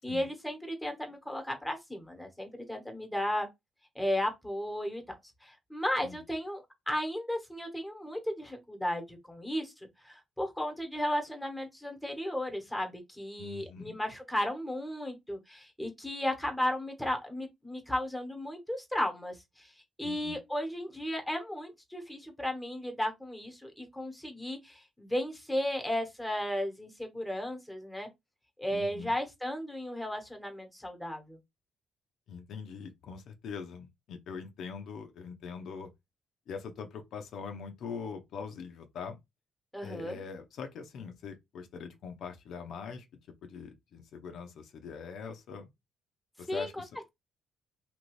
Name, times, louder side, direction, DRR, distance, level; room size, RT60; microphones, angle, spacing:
voice 1, 0.0-3.5 3.9-5.0 5.4-9.7 10.0-19.7 20.0-28.1 28.6-31.4 39.7-40.2 46.5-46.8, left 1 dB, 5° left, 1.2 m, -34 dB
voice 2, 13.4-14.0 20.0-20.4 28.7-29.1 32.3-35.9 36.5-39.2 39.8-43.0 43.4-45.7 46.4-46.9, left 5 dB, 75° left, 0.6 m, -42 dB
2.9 x 2.6 x 3.1 m
cardioid pair, 90°, 0 cm